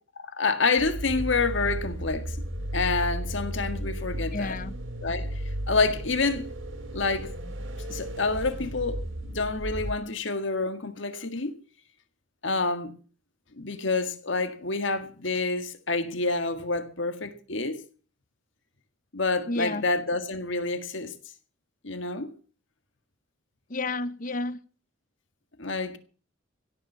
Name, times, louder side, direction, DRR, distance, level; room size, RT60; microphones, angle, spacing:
voice 1, 0.2-2.4 2.7-4.6 5.0-6.5 6.9-7.5 7.9-9.0 9.3-11.6 12.4-12.9 13.5-17.8 19.1-21.1 21.8-22.3 25.6-26.0, left 3 dB, 65° left, 1.8 m, -28 dB
sound 1, 0.8-9.9, equal, 70° right, 3.1 m, -34 dB
voice 2, 4.3-4.7 19.5-19.8 23.7-24.6, left 2 dB, 40° left, 0.8 m, -31 dB
17.0 x 7.2 x 8.0 m
head